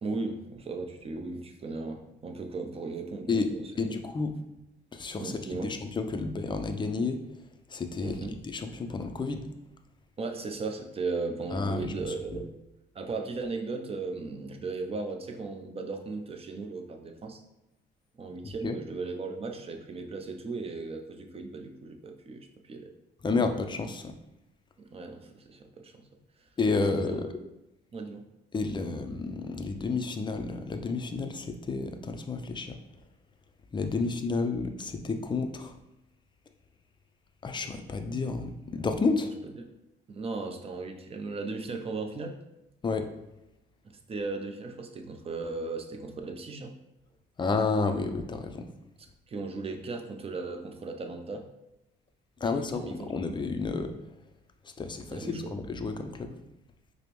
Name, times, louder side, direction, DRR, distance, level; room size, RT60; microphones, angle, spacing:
voice 1, 0.0-3.7 5.2-5.7 8.0-8.4 10.2-12.5 12.9-17.4 18.1-22.9 24.8-26.1 26.4-26.5 27.0-27.3 27.9-28.2 34.0-34.1 39.2-39.3 39.6-39.7 40.1-42.4 43.8-46.7 49.3-51.5 52.4-53.1 55.1-55.6, right 3 dB, 30° right, 4 dB, 0.5 m, -37 dB
voice 2, 3.8-4.3 4.9-7.2 7.7-9.5 11.5-12.4 18.4-18.8 23.2-24.2 26.6-27.4 28.5-32.8 33.7-35.7 37.4-39.3 42.8-43.1 47.4-48.7 52.4-53.9 54.6-56.3, left 4 dB, 25° left, 7 dB, 0.4 m, -31 dB
4.9 x 2.0 x 3.0 m, 0.93 s
cardioid pair, 90°, 20 cm